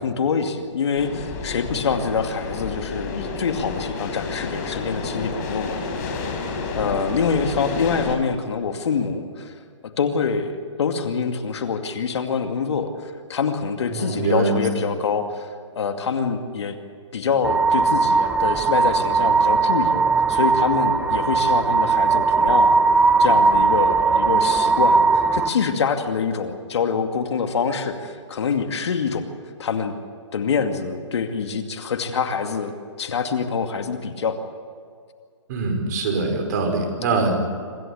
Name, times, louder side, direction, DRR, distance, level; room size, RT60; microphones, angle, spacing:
voice 1, 0.0-6.2 6.8-9.6 10.0-15.5 15.8-16.8 17.1-20.0 20.3-22.7 23.2-29.3 29.6-29.9 30.3-32.7 33.0-34.4, left 5 dB, 65° left, 6 dB, 2.4 m, -25 dB
sound 1, 0.9-8.2, left 4 dB, 35° left, 4.6 m, -30 dB
voice 2, 13.9-14.6 35.5-37.4, right 3 dB, 35° right, 3 dB, 4.9 m, -23 dB
sound 2, 17.4-25.5, right 4 dB, 5° right, 0.7 m, -18 dB
26.0 x 15.5 x 8.6 m, 2.2 s
hypercardioid pair, 155°, 16 cm